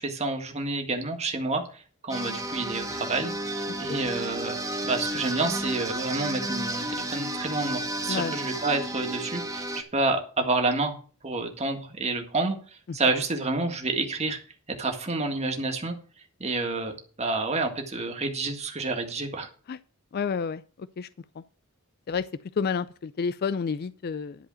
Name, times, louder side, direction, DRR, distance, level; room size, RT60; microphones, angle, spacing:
voice 1, 0.0-4.6 4.8-11.0 11.2-14.4 14.8-16.0 16.4-19.5, right 3 dB, 30° right, 1.8 m, -29 dB
sound 1, 2.1-9.8, right 1 dB, 15° right, 1.5 m, -32 dB
voice 2, 20.1-20.6 21.0-21.1 22.1-22.2 22.6-24.4, left 5 dB, 45° left, 0.4 m, -29 dB
11.0 x 4.9 x 7.6 m
head